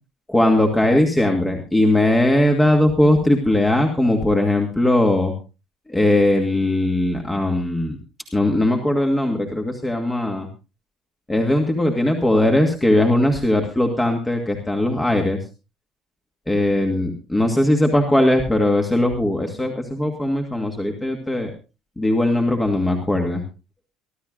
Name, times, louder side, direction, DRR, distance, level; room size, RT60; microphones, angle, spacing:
voice 1, 0.3-5.3 5.9-8.0 8.3-10.5 11.3-15.4 16.5-21.5 22.0-23.4, left 1 dB, 10° left, 2 dB, 2.4 m, -19 dB
26.0 x 12.5 x 2.6 m, 0.32 s
figure-of-eight pair, 55°, 0 cm